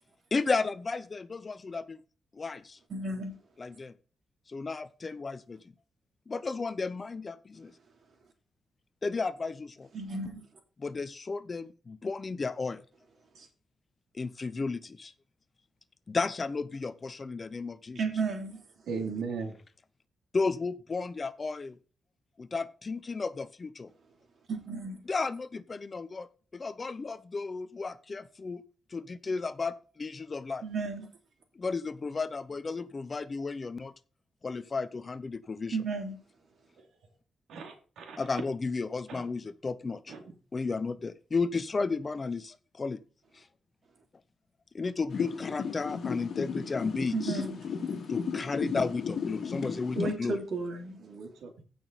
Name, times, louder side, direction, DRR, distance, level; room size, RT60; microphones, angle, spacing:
voice 1, 0.3-2.0 2.3-2.8 3.6-3.9 4.5-5.6 6.3-7.7 9.0-9.9 10.8-12.8 14.1-15.1 16.1-18.0 20.3-21.8 22.4-23.9 25.1-26.3 26.5-28.6 28.9-30.6 31.6-33.9 34.4-35.8 38.2-40.1 40.5-43.0 43.3-43.5 44.7-47.4 48.1-50.4, left 4 dB, 30° left, 0.7 m, -33 dB
voice 2, 2.9-3.3 9.9-10.4 13.3-13.5 17.9-18.6 24.5-25.0 30.6-31.1 35.7-36.1 47.1-47.6 49.9-51.0, right 3 dB, 50° right, 3.3 m, -33 dB
voice 3, 18.9-19.5 37.5-38.2 39.1-39.2 40.1-40.2 51.0-51.6, right 5 dB, 85° right, 2.7 m, -37 dB
sound 1, 45.1-50.1, left 6 dB, 55° left, 2.4 m, -34 dB
15.5 x 6.1 x 4.1 m
wide cardioid pair, 135°, 0 cm